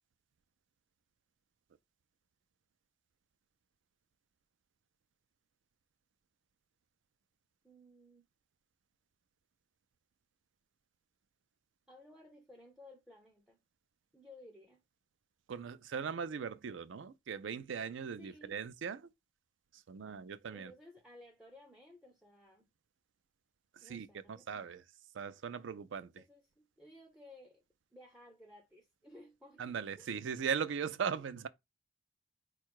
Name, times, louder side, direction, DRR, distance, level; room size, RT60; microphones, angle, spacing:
voice 1, 7.6-8.3 11.9-13.6 14.1-14.8 18.2-18.6 20.5-22.7 23.8-24.6 26.2-27.6 27.9-30.2 31.1-31.2, left 1 dB, 5° right, 0.4 m, -57 dB
voice 2, 15.5-19.1 19.7-20.7 23.7-24.8 25.1-26.2 29.6-31.5, right 6 dB, 70° right, 0.4 m, -39 dB
4.6 x 2.3 x 4.5 m
head